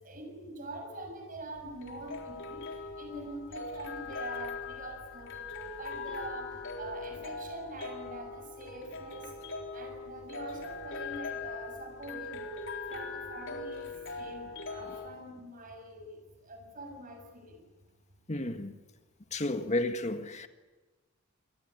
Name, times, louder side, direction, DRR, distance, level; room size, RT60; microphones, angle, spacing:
voice 1, 0.0-2.6 3.0-6.5 6.8-9.3 9.7-12.5 12.9-17.6, right 2 dB, 40° right, 6.9 m, -44 dB
sound 1, 1.6-15.1, left 4 dB, 60° left, 3.9 m, -41 dB
voice 2, 18.3-18.7 19.3-20.5, left 2 dB, 35° left, 1.8 m, -32 dB
27.5 x 20.0 x 9.8 m
head